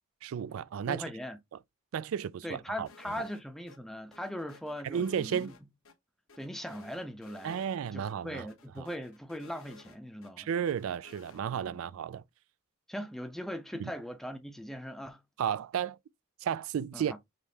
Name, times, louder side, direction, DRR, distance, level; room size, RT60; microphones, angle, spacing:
voice 1, 0.2-1.0 1.9-2.9 4.8-5.5 7.4-8.4 8.8-8.9 10.4-12.2 13.8-13.9 15.4-16.0 16.4-17.1, right 8 dB, 85° right, 0.3 m, -33 dB
voice 2, 0.9-1.4 2.4-5.5 6.4-7.6 7.9-10.5 11.5-11.8 12.9-15.2 16.9-17.2, equal, ahead, 0.7 m, -40 dB
sound 1, 2.9-3.4 3.7-3.8 4.1-5.9 6.3-7.8 8.0-8.1 8.5-10.3 10.7-11.4, left 3 dB, 90° left, 1.0 m, -56 dB
5.2 x 3.3 x 2.7 m
head